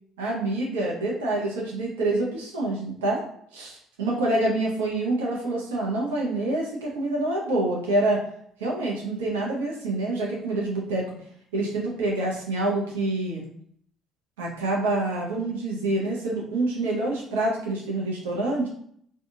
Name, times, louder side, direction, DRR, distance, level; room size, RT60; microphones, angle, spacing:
voice 1, 0.2-3.2 3.5-8.2 8.6-11.1 11.5-13.4 14.4-18.7, right 2 dB, 85° right, -3 dB, 0.6 m, -26 dB
2.8 x 2.2 x 2.6 m, 0.65 s
hypercardioid pair, 60°, 0 cm